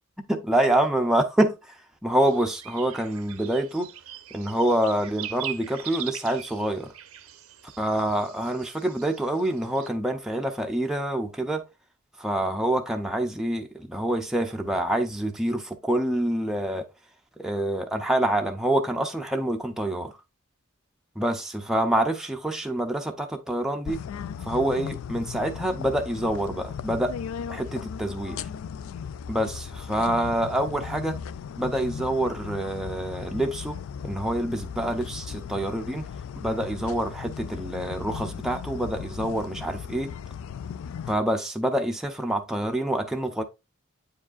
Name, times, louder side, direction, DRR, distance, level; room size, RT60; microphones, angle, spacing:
voice 1, 0.3-3.9 4.3-6.9 7.8-11.6 12.2-16.9 17.4-20.1 21.2-24.0 24.4-27.1 27.5-28.4 29.3-31.2 31.6-33.8 34.0-36.1 36.4-40.1 41.1-43.4, right 1 dB, ahead, 0.5 m, -26 dB
sound 1, 2.2-9.9, right 11 dB, 80° right, 0.7 m, -41 dB
sound 2, 23.8-41.1, left 7 dB, 70° left, 0.3 m, -37 dB
8.4 x 4.8 x 2.4 m
head